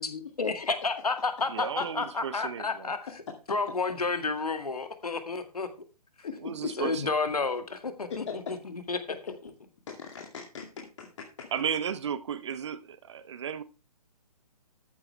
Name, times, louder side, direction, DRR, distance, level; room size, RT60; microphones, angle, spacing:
voice 1, 0.4-3.0 3.5-5.7 6.8-9.0, left 4 dB, 70° left, 2.1 m, -30 dB
voice 2, 1.5-2.9 6.4-7.1 11.5-13.6, right 8 dB, 45° right, 1.1 m, -34 dB
voice 3, 6.2-6.7 8.1-8.5 9.9-11.1 11.4-11.5, left 6 dB, 45° left, 2.3 m, -39 dB
13.5 x 9.7 x 3.3 m
figure-of-eight pair, 130°, 20 cm